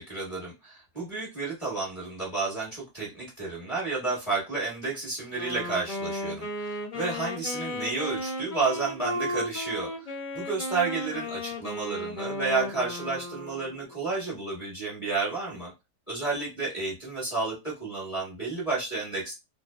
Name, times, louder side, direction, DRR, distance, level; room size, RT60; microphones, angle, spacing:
voice 1, 0.0-10.1 10.3-15.7 16.1-19.3, right 3 dB, 25° left, -7 dB, 1.0 m, -31 dB
Wind instrument woodwind instrument, 5.3-14.0, left 1 dB, 55° left, 0.5 m, -35 dB
2.6 x 2.1 x 2.2 m, 0.24 s
omnidirectional pair, 1.7 m